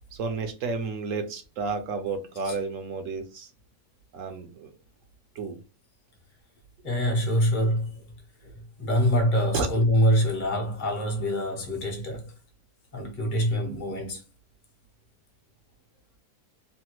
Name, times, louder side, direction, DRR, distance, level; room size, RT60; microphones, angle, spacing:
voice 1, 0.1-3.5 4.1-4.7 5.3-5.6 9.5-9.7, right 4 dB, 65° right, 0.9 m, -31 dB
voice 2, 6.8-8.1 8.4-12.3 12.9-14.2, equal, 40° left, 0.7 m, -25 dB
3.2 x 2.2 x 2.9 m
omnidirectional pair, 1.7 m